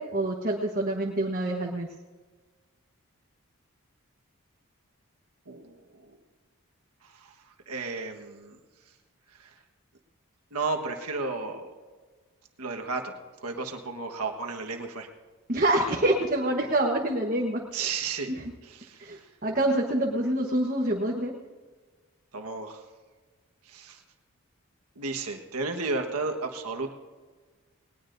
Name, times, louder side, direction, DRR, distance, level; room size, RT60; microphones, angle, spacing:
voice 1, 0.0-1.9 15.5-17.9 18.3-18.4 19.0-21.3, right 1 dB, 40° right, 0 dB, 1.2 m, -26 dB
voice 2, 5.5-6.1 7.0-7.3 7.7-8.6 9.3-9.5 10.5-11.7 12.6-13.1 13.4-15.1 17.7-18.3 18.6-19.3 22.3-22.8 23.6-24.0 24.9-26.9, right 3 dB, 85° right, 3 dB, 1.4 m, -33 dB
20.0 x 19.5 x 2.7 m, 1.4 s
head